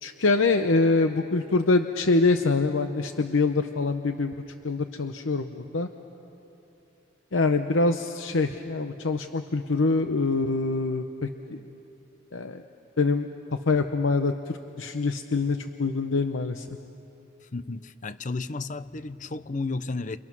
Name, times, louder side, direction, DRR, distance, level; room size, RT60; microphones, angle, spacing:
voice 1, 0.0-4.3 4.6-5.9 7.3-11.6 12.3-12.6 13.0-13.3 13.7-16.7, left 3 dB, 85° left, 7 dB, 0.8 m, -25 dB
voice 2, 17.5-20.2, left 3 dB, 40° left, 14 dB, 0.7 m, -33 dB
30.0 x 28.0 x 6.2 m, 2.9 s
head